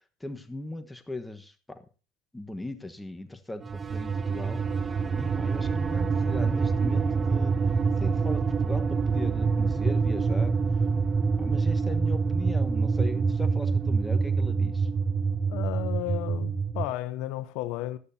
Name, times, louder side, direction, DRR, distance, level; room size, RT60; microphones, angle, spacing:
voice 1, 0.0-1.8 2.3-7.6 8.0-10.5 11.4-14.9, left 2 dB, 5° left, 1.3 m, -39 dB
sound 1, 3.6-16.9, right 5 dB, 30° right, 0.6 m, -26 dB
voice 2, 15.5-18.0, left 16 dB, 75° left, 0.8 m, -33 dB
18.0 x 12.5 x 2.8 m
supercardioid pair, 105°, 0 cm